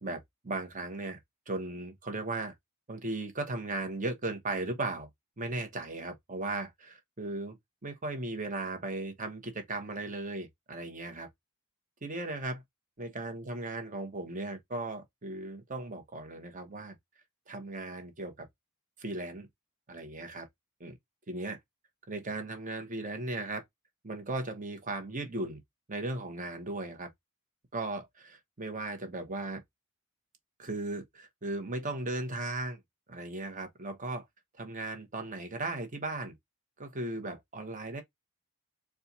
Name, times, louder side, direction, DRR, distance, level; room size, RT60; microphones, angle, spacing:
voice 1, 0.0-1.2 1.5-2.5 2.9-5.1 5.4-11.3 12.0-12.6 13.0-17.0 17.5-18.5 19.0-19.5 19.9-20.5 20.8-21.0 21.3-21.6 22.1-23.6 24.0-25.6 25.9-27.1 27.7-29.6 30.6-32.8 33.1-34.2 34.6-36.3 36.8-38.0, right 2 dB, 35° right, 1.1 m, -37 dB
4.4 x 2.4 x 4.1 m
head